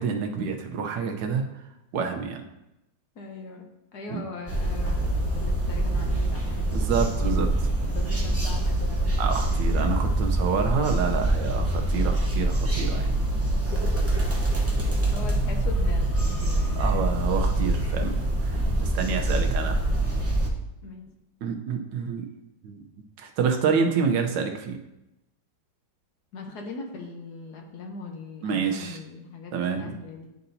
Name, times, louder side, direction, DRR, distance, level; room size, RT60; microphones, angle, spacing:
voice 1, 0.0-1.4 1.9-2.4 4.1-4.2 6.7-7.5 9.2-13.1 16.8-18.1 18.4-18.6 18.9-19.8 21.4-22.3 22.6-22.8 23.2-24.8 28.4-29.0 29.5-29.9, right 6 dB, 75° right, 4 dB, 1.5 m, -27 dB
voice 2, 3.2-3.6 3.9-7.2 7.8-9.1 9.5-9.7 10.6-11.1 13.3-13.9 14.8-16.8 18.7-18.8 19.1-19.8 20.8-21.1 26.3-30.3, left 4 dB, 65° left, 2 dB, 1.4 m, -40 dB
sound 1, 4.5-20.5, right 1 dB, 20° right, 0.4 m, -25 dB
11.0 x 4.1 x 2.7 m, 0.90 s
omnidirectional pair, 2.0 m